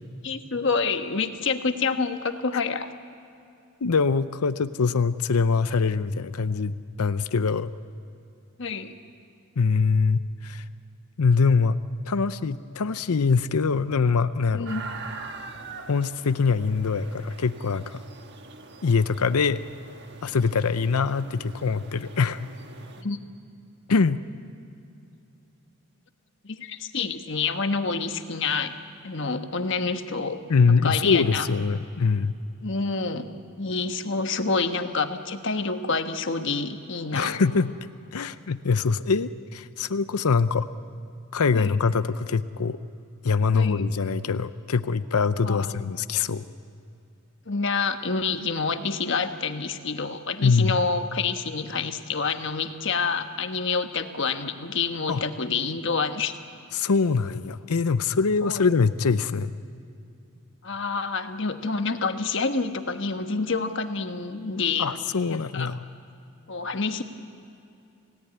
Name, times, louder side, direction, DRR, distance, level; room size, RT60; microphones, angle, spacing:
voice 1, 0.2-2.9 8.6-8.9 14.5-14.8 23.0-23.2 26.4-28.7 29.0-30.4 30.8-31.5 32.6-33.3 33.6-37.4 41.5-41.8 43.5-43.9 45.4-45.7 47.5-56.4 58.4-58.6 60.6-64.9 65.3-65.7 66.5-67.0, left 4 dB, 55° left, 7 dB, 1.3 m, -27 dB
voice 2, 3.8-7.7 9.6-10.6 11.2-11.8 12.1-14.7 15.9-18.0 18.8-19.6 20.2-22.4 23.9-24.2 30.5-32.3 37.1-37.7 38.1-40.7 41.3-42.8 43.2-46.4 50.4-50.8 55.1-55.2 56.7-59.5 64.8-65.8, left 5 dB, 90° left, 13 dB, 0.6 m, -23 dB
sound 1, 14.7-23.0, right 4 dB, 50° right, 1.5 m, -43 dB
28.5 x 17.0 x 9.6 m, 2.6 s
head